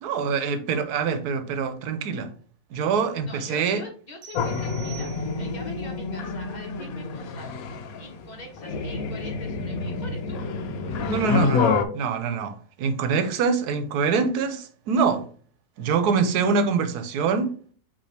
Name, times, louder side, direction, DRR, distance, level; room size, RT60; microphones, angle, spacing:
voice 1, 0.0-2.3 2.7-3.8 11.1-15.2 15.8-17.5, right 5 dB, 90° right, 1.2 m, -24 dB
voice 2, 3.2-7.5 8.0-10.4, left 1 dB, 30° left, 1.1 m, -43 dB
sound 1, 4.2-5.7, right 14 dB, 55° right, 0.3 m, -46 dB
sound 2, 4.3-11.9, left 4 dB, 75° left, 1.0 m, -28 dB
5.4 x 3.1 x 3.2 m
omnidirectional pair, 1.6 m